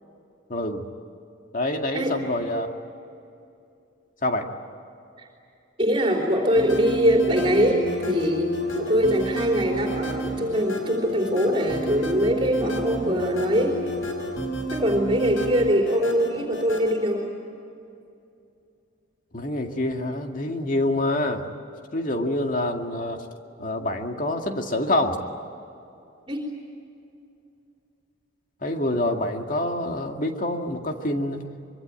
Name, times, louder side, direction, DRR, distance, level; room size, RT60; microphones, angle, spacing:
voice 1, 0.5-0.8 1.5-2.7 4.2-4.5 19.3-21.4 21.9-23.2 23.6-25.2 28.6-31.4, left 1 dB, 40° left, 3 dB, 2.1 m, -26 dB
voice 2, 5.8-13.8 14.7-17.3 26.3-26.5, equal, 25° right, 0 dB, 3.5 m, -23 dB
sound 1, 6.5-16.9, right 1 dB, 80° left, 5.0 m, -30 dB
25.0 x 23.0 x 9.0 m, 2.6 s
head